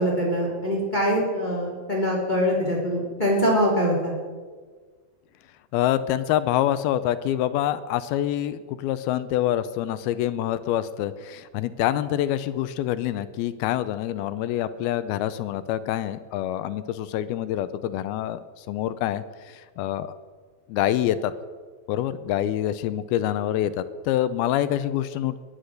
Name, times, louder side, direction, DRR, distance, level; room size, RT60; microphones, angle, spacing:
voice 1, 0.0-4.1, equal, 10° left, -2 dB, 3.3 m, -23 dB
voice 2, 5.7-20.1 20.7-21.3 21.9-25.4, left 12 dB, 80° left, 13 dB, 2.5 m, -26 dB
20.5 x 9.8 x 6.5 m, 1.5 s
omnidirectional pair, 4.5 m